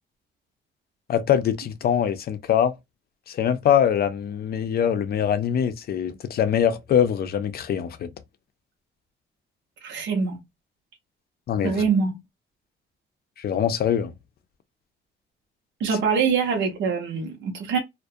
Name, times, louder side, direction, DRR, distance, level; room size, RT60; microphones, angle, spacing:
voice 1, 1.1-2.7 3.3-8.1 11.5-11.8 13.4-14.1, left 9 dB, 50° left, 0.5 m, -23 dB
voice 2, 9.8-10.4 11.6-12.2 15.8-17.8, right 5 dB, 70° right, 0.7 m, -24 dB
2.4 x 2.1 x 2.6 m
cardioid pair, 90°, 20 cm